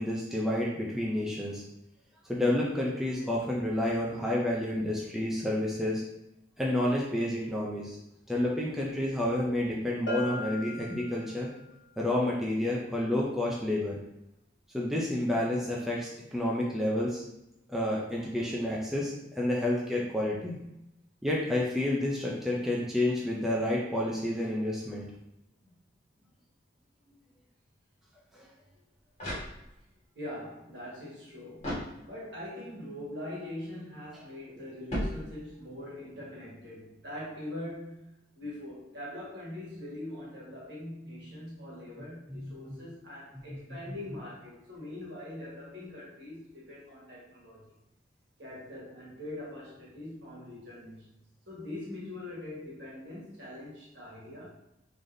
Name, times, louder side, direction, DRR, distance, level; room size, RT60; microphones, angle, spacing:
voice 1, 0.0-1.6 2.3-6.0 6.6-8.0 8.3-11.5 12.0-14.0 14.7-17.2 17.7-20.6 21.2-25.0 28.4-28.5 42.3-42.8 43.5-43.6 43.9-44.0, left 1 dB, ahead, -4 dB, 0.4 m, -30 dB
Bell, 10.1-11.7, equal, 70° left, 1.0 m, -37 dB
sound 1, 28.7-30.0 31.6-32.5 34.9-35.8, equal, 35° left, 1.4 m, -37 dB
voice 2, 30.1-31.8 32.0-47.6 48.4-51.1 51.5-54.5, left 1 dB, 60° right, -5 dB, 1.4 m, -42 dB
3.8 x 3.2 x 2.6 m, 0.86 s
head